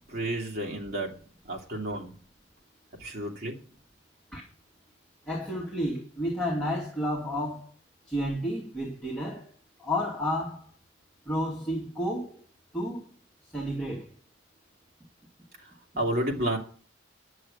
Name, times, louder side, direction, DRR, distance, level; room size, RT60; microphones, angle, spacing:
voice 1, 0.1-1.1 1.5-2.2 3.0-3.6 15.6-15.7 16.0-16.6, right 1 dB, 50° right, 2.5 m, -31 dB
voice 2, 5.3-7.7 8.1-9.5 9.8-10.7 11.3-12.4 12.7-13.0 13.4-14.1, equal, 5° left, 2.1 m, -31 dB
10.0 x 6.4 x 8.4 m
head